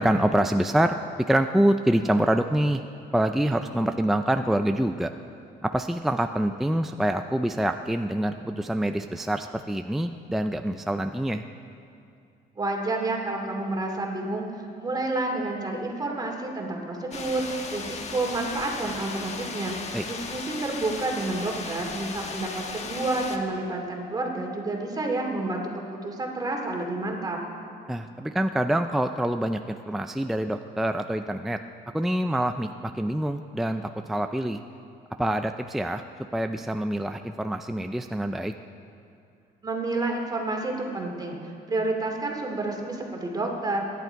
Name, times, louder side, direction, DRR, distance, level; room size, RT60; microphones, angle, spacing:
voice 1, 0.0-2.8 3.1-5.1 5.6-11.4 19.9-20.0 27.9-31.6 31.9-34.6 35.2-36.0 36.3-38.5, right 1 dB, ahead, 6 dB, 0.4 m, -26 dB
voice 2, 12.6-19.8 20.0-27.4 39.6-43.8, right 2 dB, 25° right, 1 dB, 2.7 m, -29 dB
sound 1, 17.1-23.4, left 4 dB, 40° left, 1.4 m, -36 dB
24.5 x 11.0 x 4.6 m, 2.5 s
cardioid pair, 110°, 17 cm